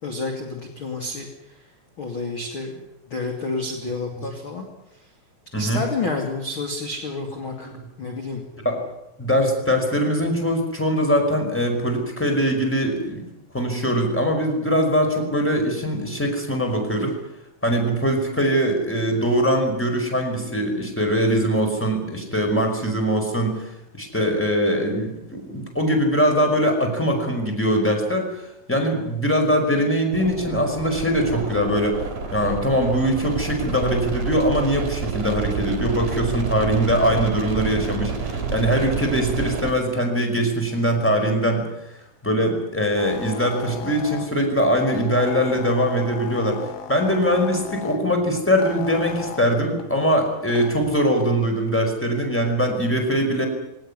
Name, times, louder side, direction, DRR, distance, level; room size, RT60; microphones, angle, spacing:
voice 1, 0.0-1.3 2.0-2.8 3.1-4.7 5.6-7.7 8.0-8.4, left 3 dB, 35° left, 2 dB, 2.5 m, -29 dB
voice 2, 5.5-5.8 7.7-7.9 8.6-8.8 9.2-13.3 13.5-17.2 17.6-28.4 28.7-32.0 32.3-41.7 42.2-46.6 46.9-53.4, equal, 5° left, 4 dB, 4.4 m, -22 dB
sound 1, 30.1-39.7, right 5 dB, 45° right, 4.4 m, -29 dB
sound 2, 43.0-50.7, left 8 dB, 75° left, 4.2 m, -37 dB
21.0 x 19.0 x 9.8 m, 0.88 s
omnidirectional pair, 5.9 m